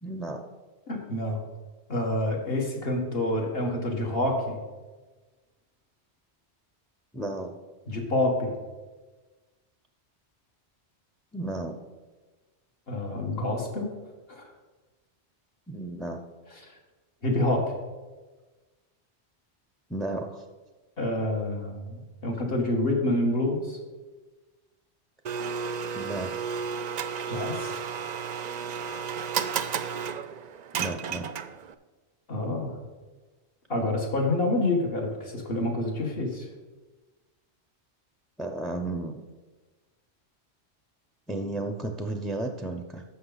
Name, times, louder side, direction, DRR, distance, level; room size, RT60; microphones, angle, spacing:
voice 1, 0.0-0.4 7.1-7.6 11.3-11.8 15.7-16.2 19.9-20.4 25.9-26.4 30.7-31.3 38.4-39.2 41.3-43.0, right 2 dB, ahead, 4 dB, 0.4 m, -33 dB
voice 2, 0.9-1.4 1.9-4.6 7.9-8.5 12.9-13.9 14.3-14.5 17.2-17.7 21.0-23.8 27.3-27.7 32.3-32.8 33.7-36.5, left 1 dB, 60° left, 0 dB, 1.8 m, -27 dB
Domestic sounds home sounds, 25.2-31.7, right 6 dB, 55° right, 0.4 m, -32 dB
14.0 x 5.8 x 4.0 m, 1.3 s
omnidirectional pair, 1.1 m